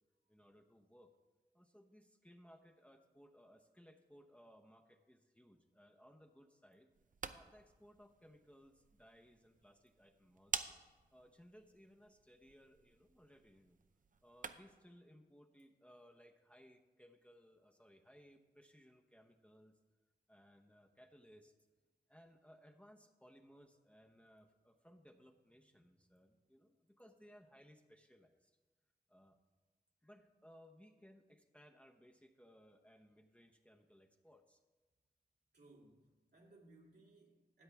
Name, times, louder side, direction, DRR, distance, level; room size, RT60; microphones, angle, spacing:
voice 1, 0.3-1.1 1.5-6.9 7.3-10.8 11.1-13.8 14.2-19.8 20.3-21.5 22.1-28.5 29.1-29.4 30.0-34.6, equal, 5° left, 3 dB, 0.9 m, -63 dB
sound 1, 6.9-14.9, right 5 dB, 55° right, 0.6 m, -50 dB
voice 2, 35.5-37.6, right 2 dB, 75° right, -2 dB, 2.5 m, -64 dB
13.0 x 8.7 x 3.5 m, 1.2 s
cardioid pair, 40°, 17 cm